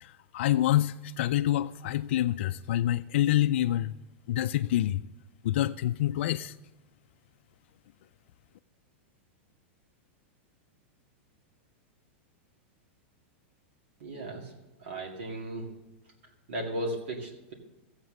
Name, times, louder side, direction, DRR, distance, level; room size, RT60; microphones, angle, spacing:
voice 1, 0.0-3.9 4.3-5.0 5.4-6.5, left 13 dB, 60° left, 0.3 m, -27 dB
voice 2, 14.0-14.5 14.8-15.7 16.5-17.5, right 1 dB, 65° right, 2.1 m, -36 dB
14.0 x 8.0 x 6.3 m
supercardioid pair, 165°, 7 cm